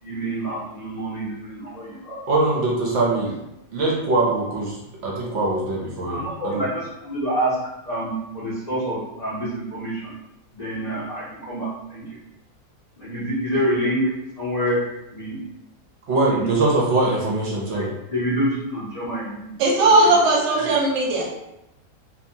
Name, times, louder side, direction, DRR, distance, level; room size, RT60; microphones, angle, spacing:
voice 1, 0.0-2.2 6.1-7.6 7.8-10.1 10.5-12.0 13.0-14.1 14.4-14.8 15.1-15.4 16.3-16.4 17.7-20.2 20.6-20.7, equal, 80° left, -10 dB, 0.3 m, -27 dB
voice 2, 2.3-3.4 3.7-6.2 6.4-6.6 16.1-17.9, right 2 dB, 65° right, -3 dB, 0.7 m, -22 dB
voice 3, 19.6-21.4, right 2 dB, 90° right, -2 dB, 1.2 m, -18 dB
2.8 x 2.1 x 2.7 m, 0.90 s
omnidirectional pair, 1.8 m